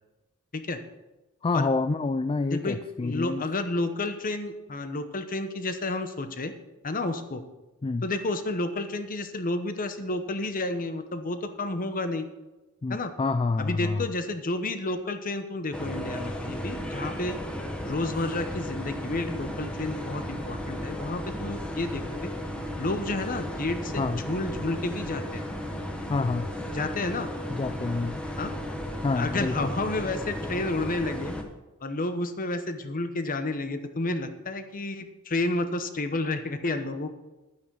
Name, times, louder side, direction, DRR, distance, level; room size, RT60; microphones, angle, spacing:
voice 1, 1.4-3.4 7.8-8.1 12.8-14.1 24.0-24.2 26.1-26.5 27.5-28.2 29.0-29.7, left 3 dB, 25° left, 10 dB, 0.3 m, -27 dB
voice 2, 2.5-6.5 6.8-7.4 8.0-12.3 12.9-13.1 13.6-17.4 17.8-22.3 22.8-25.5 26.7-27.3 28.4-28.5 29.1-31.3 31.8-37.1, left 2 dB, 40° left, 9 dB, 1.0 m, -31 dB
sound 1, 15.7-31.4, equal, 5° left, 1.2 m, -34 dB
11.5 x 9.6 x 4.7 m, 1.1 s
head